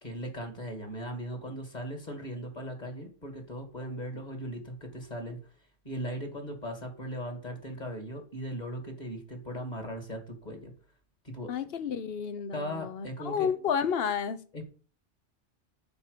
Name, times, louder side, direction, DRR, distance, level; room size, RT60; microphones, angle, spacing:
voice 1, 0.0-5.4 5.8-10.7 11.2-11.5 12.5-13.5 14.5-14.6, equal, 35° left, 2.4 m, -38 dB
voice 2, 11.5-14.5, left 7 dB, 60° left, 1.0 m, -31 dB
9.6 x 4.4 x 6.7 m
omnidirectional pair, 1.2 m